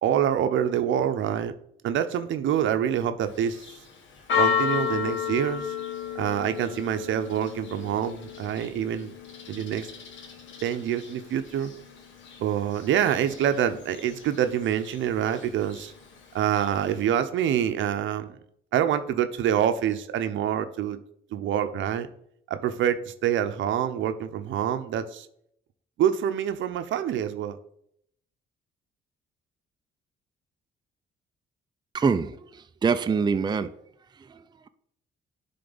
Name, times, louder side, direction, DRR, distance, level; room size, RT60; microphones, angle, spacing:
voice 1, 0.0-1.5 1.8-3.6 4.3-5.7 6.1-9.1 9.5-9.9 10.6-11.7 12.4-15.9 16.3-18.3 18.7-21.0 21.3-22.1 22.5-25.3 26.0-27.6, right 9 dB, 75° right, 10 dB, 0.7 m, -26 dB
Church bell, 3.2-17.0, left 7 dB, 70° left, 1.3 m, -34 dB
voice 2, 31.9-33.7 34.3-34.4, right 5 dB, 20° right, 9 dB, 0.4 m, -25 dB
10.5 x 3.8 x 4.0 m, 0.71 s
cardioid pair, 90°, 20 cm